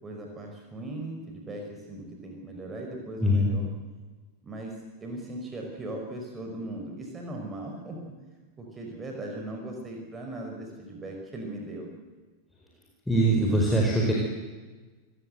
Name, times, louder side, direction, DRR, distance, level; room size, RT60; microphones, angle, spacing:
voice 1, 0.0-3.7 4.4-4.7 5.0-8.0 8.6-11.9, right 1 dB, 20° right, 2 dB, 5.4 m, -38 dB
voice 2, 3.2-3.5 13.1-14.1, right 1 dB, 5° left, -2 dB, 4.7 m, -22 dB
28.5 x 17.5 x 8.0 m, 1.3 s
figure-of-eight pair, 90°, 0 cm